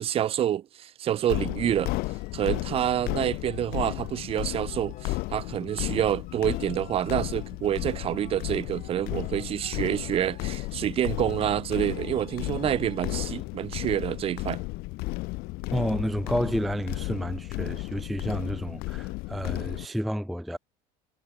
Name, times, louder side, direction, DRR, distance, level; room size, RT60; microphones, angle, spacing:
voice 1, 0.0-1.9 2.3-14.6, right 11 dB, 35° right, 0.7 m, -28 dB
sound 1, 1.3-19.9, left 23 dB, 65° left, 1.4 m, -34 dB
sound 2, 2.1-13.4 14.6-14.9, left 14 dB, 50° left, 3.0 m, -53 dB
voice 2, 15.7-20.6, equal, ahead, 0.3 m, -30 dB
cardioid pair, 140°, 17 cm